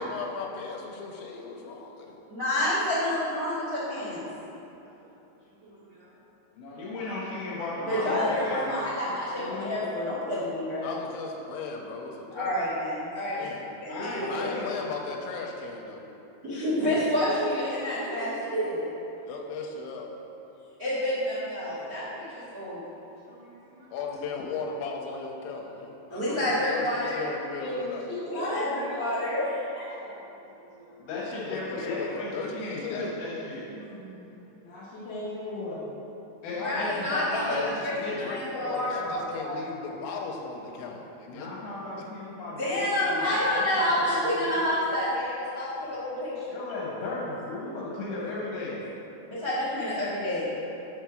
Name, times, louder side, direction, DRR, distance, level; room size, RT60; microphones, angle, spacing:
voice 1, 0.0-2.2 10.8-12.5 13.3-13.6 14.2-16.0 19.3-20.1 23.9-28.1 31.3-33.2 37.4-41.5 42.0-42.1, left 4 dB, 90° left, 0 dB, 2.9 m, -37 dB
voice 2, 2.3-4.2 7.8-10.9 12.3-13.5 13.8-14.5 16.4-18.9 20.8-22.8 26.1-27.2 28.3-30.1 36.6-37.6 37.8-39.6 42.6-46.6 49.2-50.5, left 1 dB, 85° right, -12 dB, 0.8 m, -29 dB
voice 3, 4.9-6.1 6.7-6.9 13.9-14.0 19.2-19.4 21.7-21.8 23.3-23.9 29.9-31.0 33.6-34.2 34.5-34.6 34.9-35.1 42.5-42.7 43.0-43.2 45.9-46.5 49.1-49.5 50.6-50.8, right 3 dB, 65° right, -10 dB, 2.3 m, -53 dB
voice 4, 6.6-8.7 13.9-14.7 31.0-33.7 36.4-38.4 41.3-43.6 44.0-44.4 46.5-48.8, left 2 dB, 70° left, -6 dB, 2.6 m, -35 dB
voice 5, 9.4-10.1 17.4-17.5 27.6-29.1 34.6-35.9, left 1 dB, 50° left, -10 dB, 2.5 m, -35 dB
7.4 x 4.5 x 6.2 m, 2.9 s
omnidirectional pair, 5.2 m